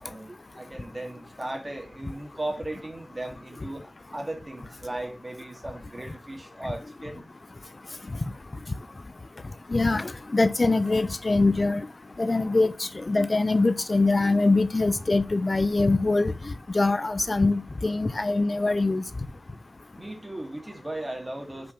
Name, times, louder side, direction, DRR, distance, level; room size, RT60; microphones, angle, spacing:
voice 1, 0.0-7.2 20.0-21.7, right 1 dB, 30° right, 2.8 m, -37 dB
voice 2, 9.7-11.9 12.2-16.3 16.7-19.0, left 3 dB, 45° left, 0.6 m, -23 dB
6.1 x 6.0 x 6.0 m
wide cardioid pair, 75°, 0 cm